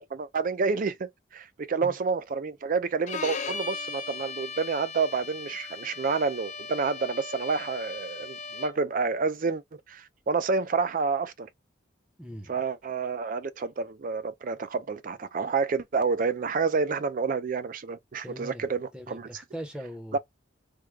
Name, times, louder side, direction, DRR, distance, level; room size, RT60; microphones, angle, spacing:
voice 1, 0.1-9.6 9.9-11.5 12.5-19.3 20.1-20.2, right 4 dB, 45° right, 0.4 m, -29 dB
Bowed string instrument, 3.1-8.9, left 5 dB, 40° left, 0.5 m, -38 dB
voice 2, 12.2-12.6 18.2-18.7 18.9-20.2, equal, 5° right, 0.7 m, -40 dB
3.6 x 2.1 x 3.1 m
head